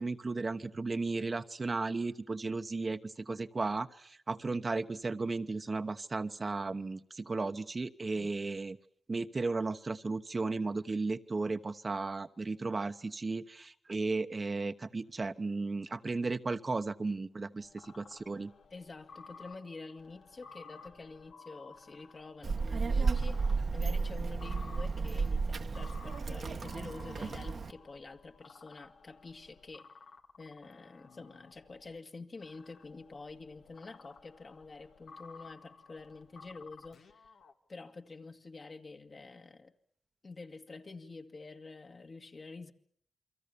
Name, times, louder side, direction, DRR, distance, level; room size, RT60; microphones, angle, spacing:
voice 1, 0.0-8.8 9.1-18.5, right 3 dB, 40° right, 1.1 m, -35 dB
sound 1, 17.6-32.0 32.4-37.5, left 4 dB, 85° left, 2.3 m, -55 dB
voice 2, 18.7-29.9 30.4-37.3 37.7-39.7 40.2-42.7, left 3 dB, 50° left, 2.1 m, -48 dB
Child speech kid speaking, 22.4-27.7, right 4 dB, 60° right, 1.3 m, -33 dB
28.5 x 23.5 x 7.0 m
cardioid pair, 65°, 0 cm